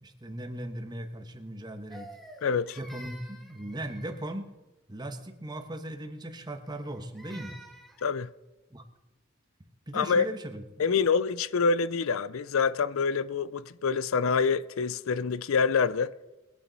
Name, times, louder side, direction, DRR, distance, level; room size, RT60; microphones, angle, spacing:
voice 1, 0.0-2.1 2.8-4.5 4.9-7.6 8.7-8.8 9.9-10.9, right 1 dB, 20° right, 1.1 m, -38 dB
Crying sobbing, 1.9-4.4 6.6-8.1, equal, ahead, 1.4 m, -49 dB
voice 2, 2.4-2.8 8.0-8.3 9.9-10.3 10.8-16.1, left 5 dB, 80° left, 0.5 m, -26 dB
22.0 x 9.1 x 4.0 m
head